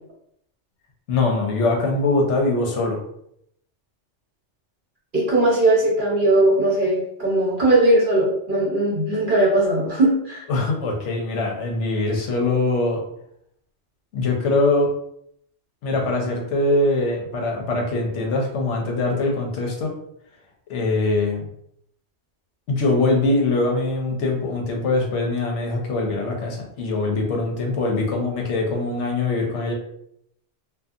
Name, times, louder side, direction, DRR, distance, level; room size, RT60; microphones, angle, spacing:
voice 1, 1.1-3.0 10.5-13.0 14.1-14.9 15.8-19.9 20.7-21.5 22.7-29.7, left 2 dB, 75° left, 1 dB, 0.9 m, -22 dB
voice 2, 5.1-10.4, right 1 dB, 50° right, -5 dB, 0.9 m, -19 dB
2.6 x 2.3 x 2.4 m, 0.72 s
omnidirectional pair, 1.2 m